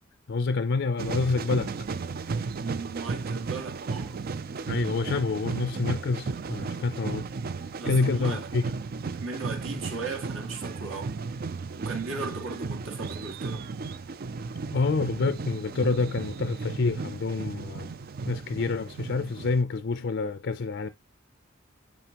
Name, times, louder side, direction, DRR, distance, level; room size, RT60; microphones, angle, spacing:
voice 1, 0.3-1.7 4.7-7.3 7.8-8.6 14.7-17.9 18.3-20.9, left 4 dB, 60° left, 0.5 m, -27 dB
sound 1, 1.0-19.6, right 4 dB, 50° right, 0.4 m, -34 dB
voice 2, 2.6-4.2 7.8-8.5 9.2-11.2 11.8-13.7, right 4 dB, 75° right, 2.2 m, -37 dB
9.2 x 4.1 x 2.9 m
head